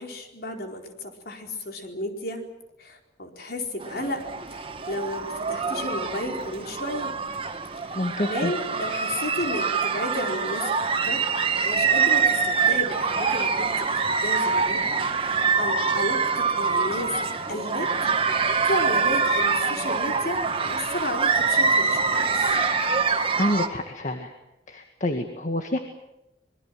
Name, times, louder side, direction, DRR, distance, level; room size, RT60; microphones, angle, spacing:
voice 1, 0.0-2.5 2.8-4.2 4.5-7.1 7.8-10.7 11.0-11.2 11.6-14.8 15.2-17.2 17.5-18.1 18.7-22.6, left 1 dB, 60° left, 3 dB, 4.5 m, -33 dB
sound 1, 3.8-23.7, right 5 dB, 30° right, 2.0 m, -25 dB
voice 2, 8.0-8.5 23.4-24.3 24.7-25.8, left 1 dB, 45° left, 5 dB, 1.9 m, -27 dB
26.0 x 22.0 x 7.8 m, 0.92 s
head